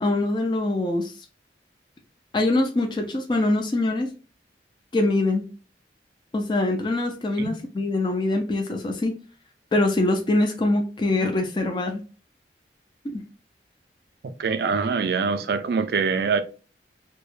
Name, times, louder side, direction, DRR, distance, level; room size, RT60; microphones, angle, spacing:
voice 1, 0.0-1.1 2.3-4.1 4.9-5.5 6.3-9.1 9.7-12.0 13.1-13.2, left 2 dB, 25° left, 0.3 m, -23 dB
voice 2, 14.4-16.4, right 5 dB, 60° right, 0.3 m, -24 dB
2.2 x 2.0 x 3.0 m
head